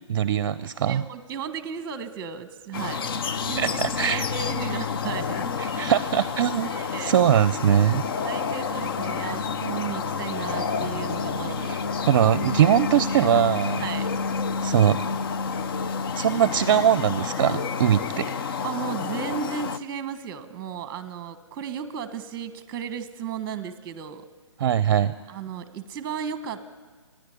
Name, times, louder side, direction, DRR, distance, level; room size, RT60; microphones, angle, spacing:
voice 1, 0.1-1.0 3.6-4.2 5.6-6.7 7.0-8.0 11.5-11.8 12.1-13.8 14.6-15.0 16.2-18.3 24.6-25.1, right 10 dB, 45° right, 15 dB, 0.6 m, -21 dB
voice 2, 0.8-3.1 3.4-5.5 5.7-5.9 6.2-6.3 6.6-7.1 8.2-11.8 13.8-14.1 18.6-24.3 25.3-26.7, right 7 dB, 20° right, 11 dB, 1.3 m, -35 dB
sound 1, 2.7-19.8, left 5 dB, 45° left, 0.7 m, -29 dB
sound 2, 2.7-10.9, left 1 dB, 30° left, 5.8 m, -49 dB
28.0 x 10.5 x 9.9 m, 1.4 s
hypercardioid pair, 155°, 16 cm